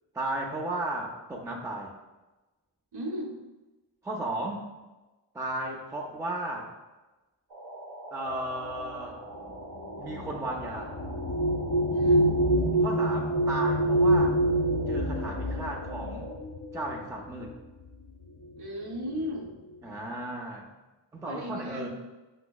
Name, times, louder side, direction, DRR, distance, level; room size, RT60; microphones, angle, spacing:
voice 1, 0.1-1.9 4.0-4.6 5.3-6.7 8.1-9.2 10.0-10.9 12.8-14.4 14.9-16.3 16.7-17.5 19.8-20.7 21.1-21.9, right 1 dB, 5° right, -1 dB, 0.4 m, -34 dB
voice 2, 2.9-3.4 11.9-12.3 18.6-19.5 21.2-21.9, equal, 50° right, 0 dB, 0.7 m, -35 dB
sound 1, 7.5-16.3, right 1 dB, 85° right, 0.8 m, -43 dB
sound 2, 8.6-17.5 18.4-18.6 18.9-19.5, right 1 dB, 50° left, 0.7 m, -27 dB
5.5 x 2.0 x 2.3 m, 1.1 s
cardioid pair, 40°, 49 cm